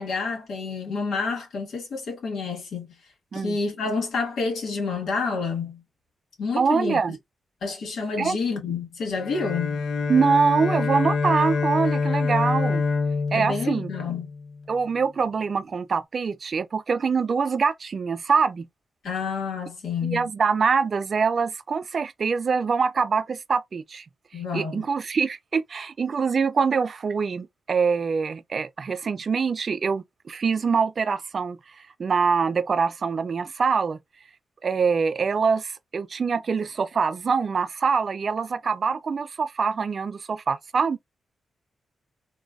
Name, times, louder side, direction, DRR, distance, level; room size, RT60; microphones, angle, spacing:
voice 1, 0.0-2.9 3.3-5.8 6.4-7.0 7.6-9.8 13.3-14.3 19.0-20.3 24.3-24.9, left 4 dB, 75° left, 1.2 m, -29 dB
voice 2, 6.6-7.2 8.2-8.4 10.1-12.8 13.3-13.9 14.7-18.7 20.0-24.0 24.5-31.6 32.0-34.0 34.6-41.0, right 5 dB, 40° right, 0.3 m, -24 dB
Bowed string instrument, 9.2-14.6, left 4 dB, 55° left, 0.4 m, -26 dB
3.7 x 2.3 x 2.2 m
wide cardioid pair, 140°, 0 cm